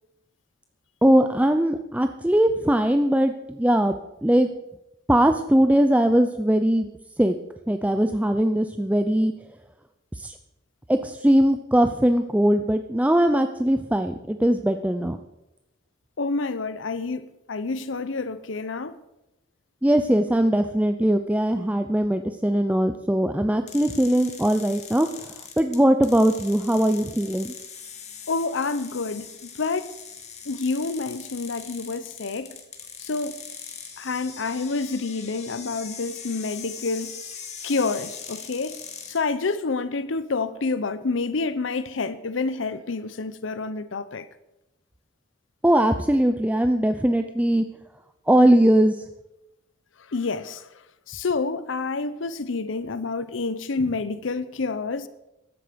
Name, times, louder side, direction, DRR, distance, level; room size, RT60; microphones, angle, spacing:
voice 1, 1.0-3.9 4.2-4.5 5.1-6.9 7.2-7.3 7.7-9.3 10.2-10.3 10.9-15.2 19.8-25.1 25.6-27.5 45.6-47.6 48.3-48.9, right 1 dB, 10° right, 0.5 m, -20 dB
voice 2, 16.2-19.0 28.3-29.9 30.5-32.6 33.0-33.4 34.0-37.2 37.6-38.8 39.1-44.3 50.1-50.7 51.1-55.1, left 4 dB, 90° left, 0.7 m, -28 dB
sound 1, 23.7-39.2, left 6 dB, 35° left, 2.2 m, -41 dB
15.0 x 12.5 x 5.2 m
head